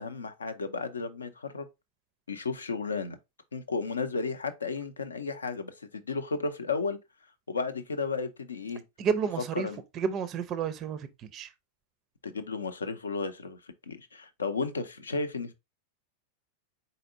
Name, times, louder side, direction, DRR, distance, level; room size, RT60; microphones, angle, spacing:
voice 1, 0.0-1.7 2.3-3.2 3.5-7.0 7.5-8.8 9.6-9.8 12.2-13.6 13.9-15.5, left 4 dB, 75° left, 0.6 m, -33 dB
voice 2, 9.0-9.7 9.9-11.5, right 6 dB, 30° right, 0.4 m, -31 dB
4.2 x 4.0 x 2.4 m
figure-of-eight pair, 90°, 0 cm